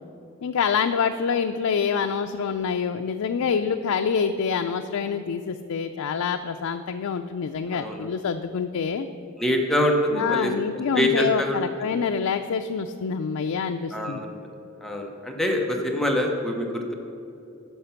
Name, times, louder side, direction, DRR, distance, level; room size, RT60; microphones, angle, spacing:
voice 1, 0.4-9.1 10.1-14.2, left 6 dB, 90° left, 6 dB, 0.4 m, -26 dB
voice 2, 7.7-8.1 9.4-10.5 10.9-11.6 11.8-12.0 13.9-14.4 14.8-16.9, left 1 dB, ahead, 1 dB, 0.8 m, -25 dB
11.0 x 5.8 x 5.7 m, 2.8 s
head